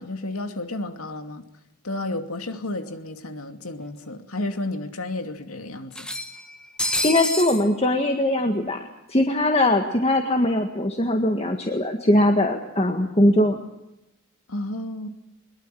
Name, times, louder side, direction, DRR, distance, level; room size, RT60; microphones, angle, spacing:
voice 1, 0.0-1.4 1.8-6.1 14.5-15.1, left 2 dB, 90° left, 7 dB, 2.5 m, -32 dB
sound 1, 2.5-2.6 2.9-3.0 4.1-4.2 4.5-4.6 5.9-7.6, left 1 dB, 5° left, 1.4 m, -28 dB
voice 2, 7.0-8.8 9.1-13.6, left 1 dB, 30° left, 4 dB, 1.8 m, -21 dB
22.0 x 22.0 x 7.7 m, 0.90 s
head